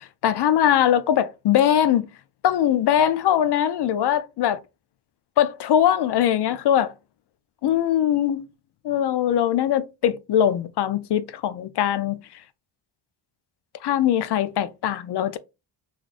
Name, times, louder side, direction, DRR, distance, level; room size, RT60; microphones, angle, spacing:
voice 1, 0.0-2.1 2.4-4.6 5.4-6.9 7.6-8.4 8.8-12.2 13.8-15.4, left 10 dB, 60° left, 0.5 m, -21 dB
4.0 x 3.1 x 2.4 m
wide cardioid pair, 155°, 48 cm